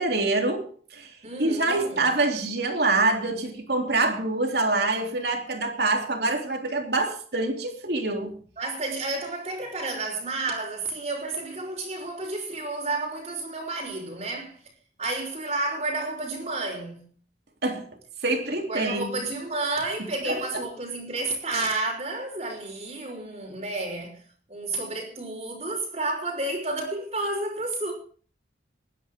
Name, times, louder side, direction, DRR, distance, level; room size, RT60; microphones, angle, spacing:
voice 1, 0.0-1.1 1.4-8.3 17.6-17.8 18.2-19.1 20.3-20.4, right 2 dB, 65° right, 3.2 m, -25 dB
voice 2, 1.2-2.1 8.6-14.6 15.0-17.1 18.7-24.2 24.5-27.9, right 2 dB, 35° right, 4.3 m, -31 dB
21.0 x 10.0 x 3.7 m
head